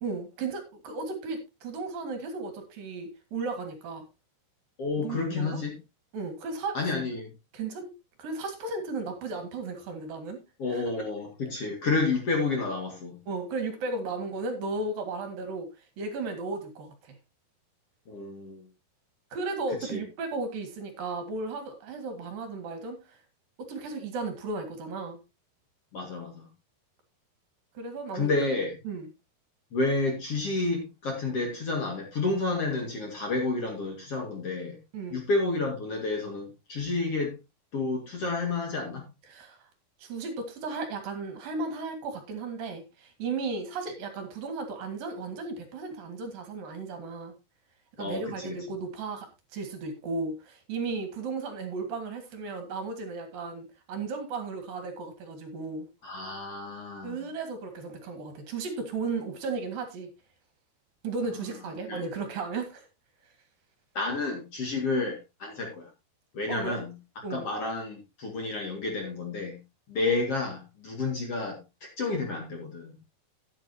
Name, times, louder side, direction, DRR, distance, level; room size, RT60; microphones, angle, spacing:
voice 1, 0.0-4.1 5.0-5.6 6.1-6.9 7.5-7.9 8.2-10.4 10.7-10.8 13.3-15.7 16.0-17.2 19.3-23.2 23.6-25.2 27.8-28.3 28.9-29.1 34.9-35.2 39.3-39.7 40.0-47.3 48.0-55.9 57.0-60.1 61.0-62.9 66.5-66.8 67.2-67.5, right 3 dB, 65° right, 7 dB, 3.4 m, -35 dB
voice 2, 4.8-5.8 6.7-7.3 10.6-13.2 18.1-18.6 19.9-20.0 25.9-26.5 28.1-28.8 29.7-34.8 35.1-37.3 37.7-39.1 48.0-48.6 56.0-57.2 61.9-62.0 63.9-65.9 66.3-66.9 67.3-69.6 69.9-72.9, left 3 dB, 45° left, 2 dB, 2.5 m, -30 dB
13.0 x 10.0 x 2.8 m, 0.24 s
omnidirectional pair, 4.6 m